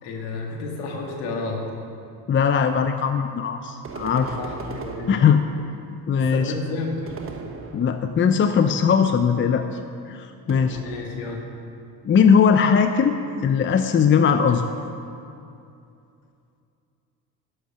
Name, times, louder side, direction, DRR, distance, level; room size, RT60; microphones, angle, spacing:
voice 1, 0.0-1.6 4.4-5.2 6.1-7.1 10.8-11.4, left 3 dB, 85° left, 1 dB, 1.9 m, -31 dB
voice 2, 2.3-4.4 5.1-5.4 6.1-6.5 7.7-9.7 10.1-10.8 12.0-14.6, left 6 dB, 30° left, 8 dB, 0.6 m, -19 dB
sound 1, 3.8-5.8 7.1-8.3 10.5-11.5, right 4 dB, 35° right, 1.3 m, -38 dB
11.5 x 8.1 x 5.8 m, 2.6 s
supercardioid pair, 80°, 39 cm